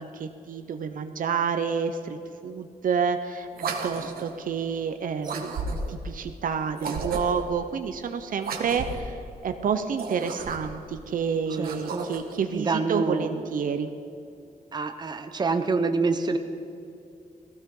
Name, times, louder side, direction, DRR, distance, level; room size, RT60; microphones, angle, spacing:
voice 1, 0.0-9.2 9.4-13.9, right 6 dB, 65° right, 8 dB, 0.8 m, -29 dB
sound 1, 3.5-4.4 5.2-6.0 6.7-7.5 8.4-9.1 9.9-10.8 11.5-12.4, right 3 dB, 80° right, 1.7 m, -33 dB
voice 2, 11.6-12.1 12.5-13.4 14.7-16.4, right 4 dB, 30° right, 7 dB, 0.9 m, -27 dB
18.5 x 16.5 x 3.9 m, 2.6 s
wide cardioid pair, 135°, 15 cm